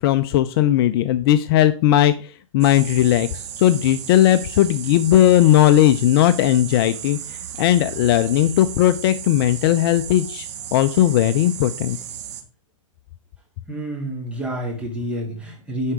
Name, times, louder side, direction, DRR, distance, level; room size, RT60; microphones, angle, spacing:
voice 1, 0.0-12.0, left 13 dB, 45° left, 13 dB, 0.5 m, -17 dB
sound 1, 2.6-12.4, right 9 dB, 60° right, 1.6 m, -35 dB
voice 2, 13.7-15.9, equal, 5° right, -1 dB, 2.9 m, -28 dB
9.8 x 4.6 x 4.9 m, 0.38 s
hypercardioid pair, 125°, 17 cm